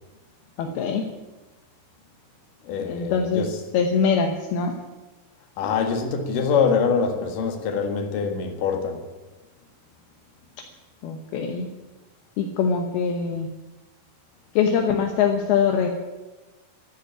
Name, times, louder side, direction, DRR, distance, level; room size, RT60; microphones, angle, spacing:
voice 1, 0.6-1.0 2.9-3.5 3.7-4.7 11.0-11.7 12.4-13.5 14.5-15.9, left 6 dB, 70° left, 2.4 m, -23 dB
voice 2, 2.6-3.6 5.6-9.1, left 6 dB, 55° left, 2.7 m, -24 dB
13.5 x 10.5 x 9.8 m
omnidirectional pair, 5.8 m